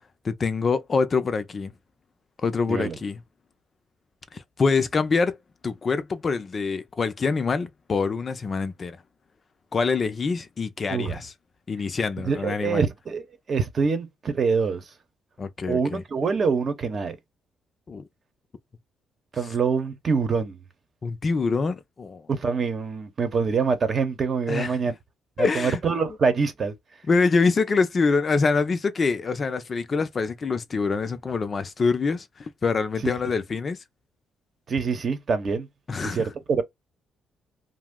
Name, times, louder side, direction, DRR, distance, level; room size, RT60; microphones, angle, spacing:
voice 1, 0.2-1.7 2.4-3.2 4.3-5.4 5.6-9.0 9.7-11.3 11.7-12.8 15.4-16.0 17.9-18.0 21.0-22.2 24.5-24.8 25.4-25.8 27.1-33.8 35.9-36.3, left 4 dB, 40° left, 0.4 m, -25 dB
voice 2, 12.2-14.8 15.7-17.2 19.3-20.6 22.3-24.9 25.4-26.7 34.7-35.7 36.0-36.6, right 5 dB, 45° right, 0.8 m, -25 dB
2.6 x 2.0 x 3.6 m
cardioid pair, 90°, 0 cm